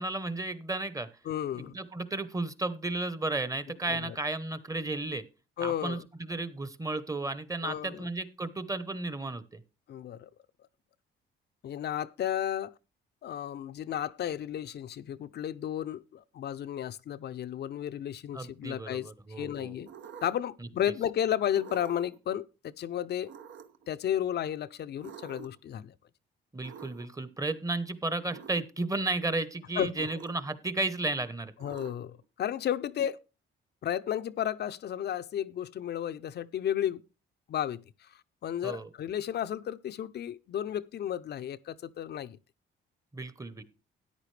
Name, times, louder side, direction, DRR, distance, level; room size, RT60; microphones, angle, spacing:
voice 1, 0.0-1.1 1.5-5.2 5.6-9.6 18.3-19.9 26.5-31.5 38.6-38.9 43.1-43.6, right 2 dB, 15° right, 0.9 m, -33 dB
voice 2, 1.3-1.8 3.9-4.1 5.6-6.1 7.6-8.1 9.9-10.3 11.6-12.7 13.2-19.1 19.4-19.9 20.2-23.3 23.9-25.9 29.8-30.1 31.6-33.2 33.8-37.0 37.5-38.1 38.4-42.4, left 10 dB, 55° left, 0.6 m, -33 dB
sound 1, 19.9-20.5 21.5-22.2 23.2-23.9 25.0-25.7 26.6-27.3 28.3-28.7 29.9-30.6 31.6-32.2, right 8 dB, 70° right, 0.9 m, -48 dB
13.5 x 9.8 x 3.2 m
cardioid pair, 90°, 20 cm